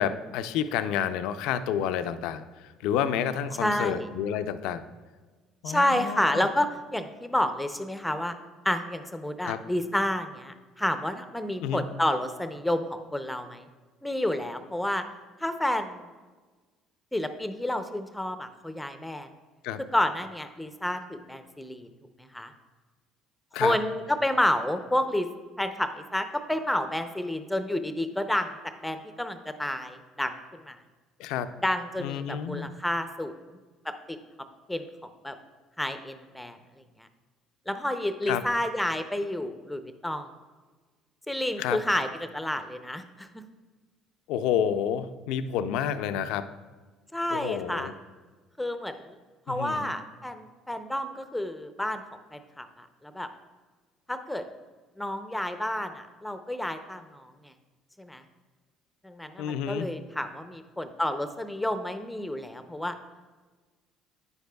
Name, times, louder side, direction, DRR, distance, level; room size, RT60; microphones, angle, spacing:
voice 1, 0.0-4.8 5.6-6.5 9.4-9.6 11.6-11.8 19.6-19.8 23.5-23.8 31.2-31.5 32.0-32.7 38.3-38.4 41.6-41.8 44.3-46.5 47.3-47.9 49.5-49.9 59.4-59.9, left 9 dB, 75° left, 11 dB, 0.4 m, -29 dB
voice 2, 3.6-4.1 5.7-8.4 8.6-13.7 14.0-15.0 15.4-16.0 17.1-19.3 19.9-21.9 22.2-22.5 23.6-25.3 25.6-30.8 31.6-33.3 33.8-34.2 34.7-34.9 35.2-35.4 35.8-36.6 37.0-37.1 37.7-40.3 41.3-43.4 47.1-47.9 48.6-49.0 49.5-52.0 52.3-53.3 54.1-54.4 55.0-57.5 58.0-58.2 59.0-62.9, left 1 dB, 5° left, 9 dB, 0.6 m, -30 dB
9.7 x 8.1 x 2.3 m, 1.4 s
supercardioid pair, 70°, 0 cm